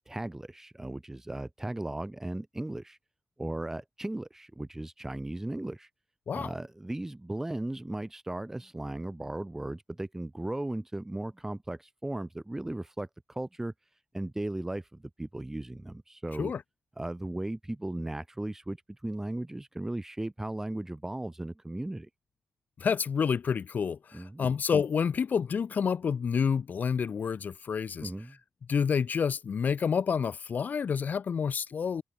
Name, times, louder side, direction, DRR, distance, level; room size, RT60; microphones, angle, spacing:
voice 1, 0.1-3.0 3.4-5.9 6.3-13.7 14.1-16.5 17.0-22.1 24.1-24.4 28.0-28.3, right 1 dB, 10° right, 3.3 m, -36 dB
voice 2, 22.8-28.1 28.7-32.0, left 6 dB, 55° left, 1.0 m, -29 dB
open air
wide cardioid pair, 150°, 4 cm